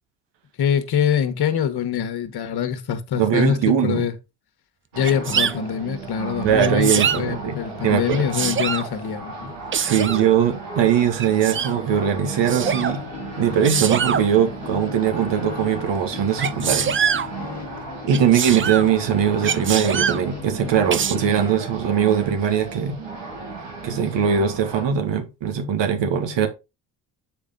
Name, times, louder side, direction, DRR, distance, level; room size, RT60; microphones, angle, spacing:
voice 1, 0.6-4.1 4.9-9.5, left 8 dB, 55° left, 1.4 m, -24 dB
voice 2, 3.2-4.1 6.4-8.3 9.8-13.0 13.4-16.9 18.0-23.0 23.8-26.5, right 8 dB, 65° right, 1.7 m, -21 dB
sound 1, 4.9-24.8, right 4 dB, 85° right, 2.4 m, -34 dB
Sneeze, 5.0-5.5 6.6-7.2 8.1-8.9 9.7-10.2 11.2-11.7 12.5-12.9 13.6-14.2 16.4-17.3 18.1-18.9 19.4-20.2 20.9-21.1, right 7 dB, 25° right, 0.5 m, -23 dB
sound 2, 12.1-21.7, left 6 dB, 35° left, 1.3 m, -37 dB
7.0 x 4.8 x 3.8 m
supercardioid pair, 60°, 47 cm